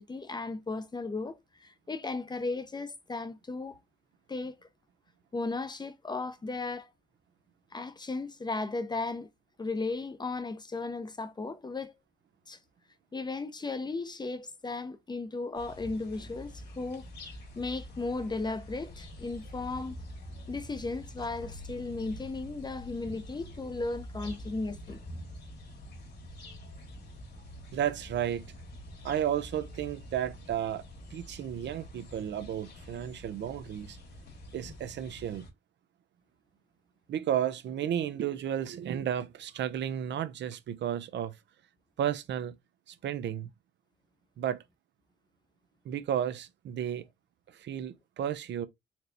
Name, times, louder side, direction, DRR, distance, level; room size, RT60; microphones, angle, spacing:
voice 1, 0.0-3.8 4.3-4.7 5.3-6.9 7.7-9.3 9.6-11.9 12.5-12.6 13.1-17.0 17.5-20.0 20.5-25.0, left 3 dB, 20° left, 0.6 m, -35 dB
sound 1, 15.5-35.5, left 1 dB, 55° left, 1.8 m, -46 dB
voice 2, 27.7-28.5 29.0-30.8 31.1-34.0 34.5-35.5 37.1-41.4 42.0-42.6 42.9-43.5 44.4-44.6 45.8-47.1 47.5-48.7, right 10 dB, 65° right, 0.6 m, -33 dB
4.3 x 3.2 x 2.7 m
cardioid pair, 90°, 20 cm